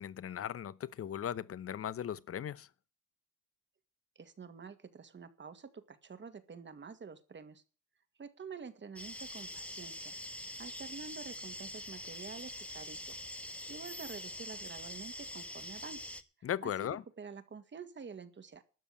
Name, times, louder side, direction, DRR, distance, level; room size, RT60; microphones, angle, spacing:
voice 1, 0.0-2.7 16.4-17.0, left 9 dB, 50° left, 0.9 m, -37 dB
voice 2, 4.2-7.6 8.2-10.1 10.6-13.2 13.7-16.0 16.4-16.7 17.2-18.6, right 5 dB, 40° right, 2.0 m, -48 dB
sound 1, 9.0-16.2, left 1 dB, 5° left, 1.4 m, -44 dB
12.5 x 7.0 x 8.6 m
cardioid pair, 90°, 30 cm